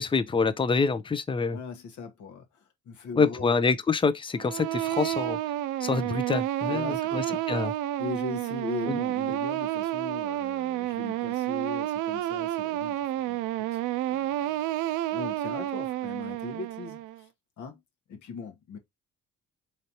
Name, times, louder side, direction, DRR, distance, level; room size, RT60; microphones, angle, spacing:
voice 1, 0.0-1.6 3.2-5.4 5.8-7.7 8.9-9.0, left 4 dB, 15° left, 0.5 m, -26 dB
voice 2, 1.5-3.5 6.6-7.5 8.0-13.8 14.1-14.6 15.1-17.3 17.6-17.8 18.1-18.8, left 4 dB, 75° left, 1.2 m, -40 dB
sound 1, 4.4-17.2, right 14 dB, 80° right, 0.5 m, -30 dB
3.9 x 3.2 x 2.7 m
cardioid pair, 90°, 30 cm